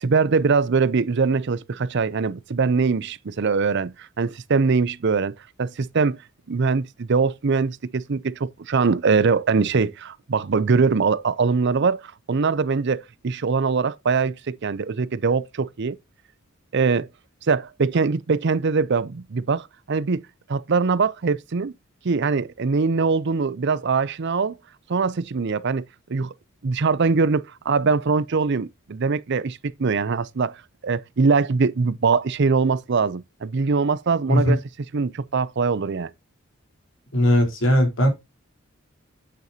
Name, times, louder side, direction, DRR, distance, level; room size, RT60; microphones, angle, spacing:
voice 1, 0.0-6.2 6.5-16.0 16.7-17.1 17.5-20.2 20.5-21.7 22.0-24.6 24.9-25.8 26.1-26.3 26.6-30.5 30.8-34.6 34.9-36.1, right 4 dB, 55° right, 0.5 m, -22 dB
voice 2, 37.1-38.1, equal, 65° left, 4.0 m, -18 dB
9.4 x 7.7 x 2.8 m
head